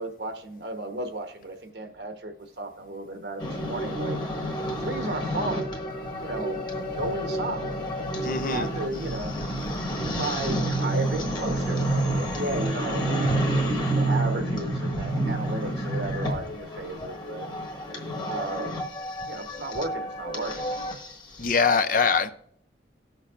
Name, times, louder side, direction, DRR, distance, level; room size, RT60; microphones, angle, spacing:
voice 1, 0.0-4.2 4.6-5.9 6.2-6.7 6.9-9.3 9.9-17.5 18.3-18.9 19.3-20.7, right 2 dB, 70° right, 1.1 m, -34 dB
sound 1, 3.4-21.5, right 1 dB, 25° left, 1.3 m, -29 dB
voice 2, 8.2-8.7 21.4-22.3, left 5 dB, 45° left, 0.5 m, -23 dB
19.0 x 6.5 x 2.5 m
head